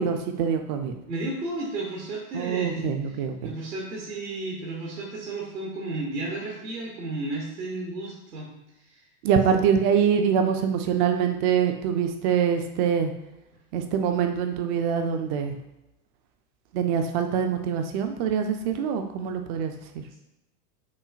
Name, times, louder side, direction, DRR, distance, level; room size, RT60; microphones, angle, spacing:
voice 1, 0.0-0.9 2.3-3.5 9.2-13.1 13.7-15.6 16.7-20.0, right 7 dB, 35° right, 5 dB, 0.4 m, -24 dB
voice 2, 1.1-3.2 3.4-8.5 8.8-9.0 20.1-20.2, right 2 dB, 90° right, -3 dB, 1.1 m, -33 dB
6.0 x 2.1 x 2.4 m, 0.93 s
hypercardioid pair, 105°, 47 cm